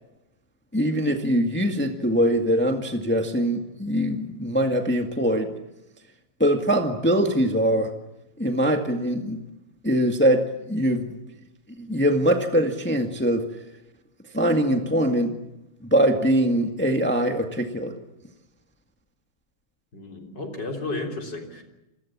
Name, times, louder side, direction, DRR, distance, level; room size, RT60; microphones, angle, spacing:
voice 1, 0.7-5.5 6.4-7.9 8.4-9.4 9.8-10.4 10.7-11.2 11.8-13.5 14.3-15.3 15.9-18.0, equal, 5° left, 4 dB, 1.7 m, -22 dB
voice 2, 19.9-21.6, left 2 dB, 50° left, 2 dB, 4.3 m, -33 dB
28.0 x 21.5 x 7.4 m, 0.92 s
omnidirectional pair, 2.4 m